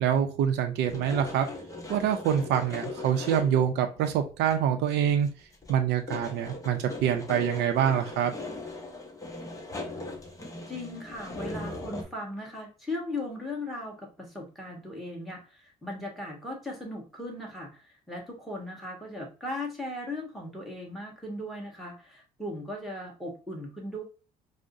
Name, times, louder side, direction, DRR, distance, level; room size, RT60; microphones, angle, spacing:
voice 1, 0.0-1.5 1.9-5.3 5.7-8.3, right 9 dB, 85° right, 5 dB, 0.6 m, -25 dB
sound 1, 0.8-3.7 4.0-4.1 4.4-5.3 5.5-12.0, left 2 dB, 20° left, 0.8 m, -39 dB
voice 2, 10.7-24.0, left 1 dB, ahead, 0 dB, 1.5 m, -38 dB
4.7 x 2.1 x 2.5 m, 0.34 s
cardioid pair, 110°, 17 cm